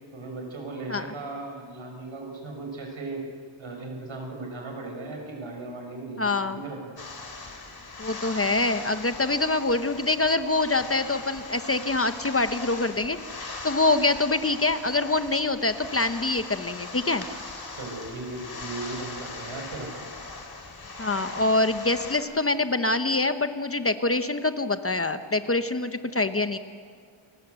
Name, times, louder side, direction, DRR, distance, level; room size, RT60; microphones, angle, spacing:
voice 1, 0.1-3.2 3.6-6.9 17.7-19.9, right 2 dB, 70° right, 2 dB, 5.9 m, -37 dB
voice 2, 6.2-6.6 8.0-17.2 21.0-26.6, left 2 dB, 30° left, 9 dB, 0.9 m, -25 dB
sound 1, 7.0-22.2, left 3 dB, 45° left, 3.8 m, -40 dB
29.5 x 21.0 x 8.1 m, 2.1 s
wide cardioid pair, 155°, 49 cm